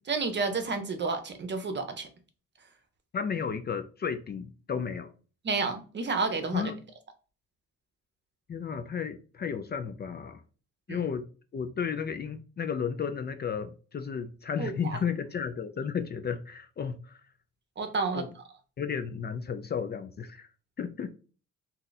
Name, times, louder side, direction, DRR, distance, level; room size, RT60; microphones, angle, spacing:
voice 1, 0.0-2.1 5.4-6.7 10.9-11.0 14.6-15.0 17.8-18.3, right 4 dB, 35° right, 0.7 m, -30 dB
voice 2, 3.1-5.1 6.5-6.9 8.5-10.4 10.9-17.2 18.1-18.3 18.8-20.5 20.8-21.1, left 6 dB, 35° left, 0.4 m, -33 dB
2.8 x 2.3 x 3.9 m
cardioid pair, 90°, 30 cm